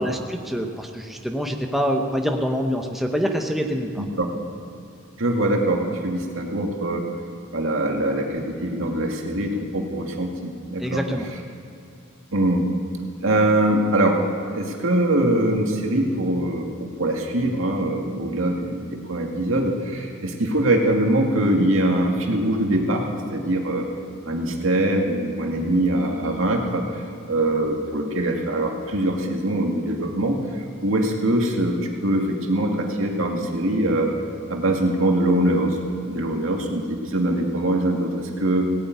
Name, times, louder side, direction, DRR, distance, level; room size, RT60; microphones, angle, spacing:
voice 1, 0.0-4.0 10.8-11.3, equal, ahead, 2 dB, 0.9 m, -25 dB
voice 2, 4.0-4.3 5.2-7.1 7.5-11.0 12.3-12.6 13.2-14.2 14.4-23.9 24.3-26.8 27.3-30.4 30.8-34.1 34.5-38.7, right 1 dB, 70° right, 1 dB, 2.2 m, -23 dB
17.5 x 8.6 x 9.4 m, 2.6 s
head